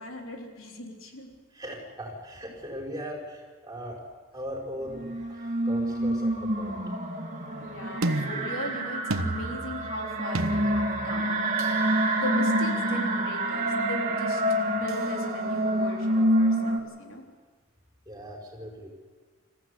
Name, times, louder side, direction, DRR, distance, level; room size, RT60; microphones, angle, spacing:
voice 1, 0.0-1.3 7.6-11.3 12.1-17.2, left 1 dB, 75° left, 1 dB, 3.6 m, -38 dB
voice 2, 1.5-4.0 4.3-6.8 18.0-18.9, equal, 15° right, 0 dB, 5.1 m, -39 dB
sound 1, 4.9-16.8, right 1 dB, 35° right, 2.5 m, -27 dB
sound 2, 8.0-11.9 14.9-15.1, right 2 dB, 80° right, 1.1 m, -33 dB
26.5 x 15.0 x 8.4 m, 1.5 s
head